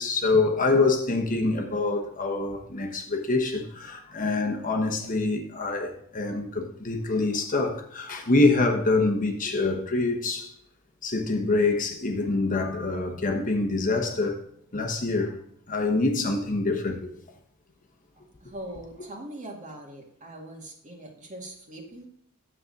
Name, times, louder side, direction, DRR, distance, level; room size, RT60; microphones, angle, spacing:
voice 1, 0.0-10.5 11.0-14.4 14.7-15.4 15.7-17.1, left 3 dB, 40° left, 1.1 m, -25 dB
voice 2, 18.1-22.0, right 1 dB, 35° right, 2.0 m, -42 dB
9.7 x 7.5 x 3.9 m
head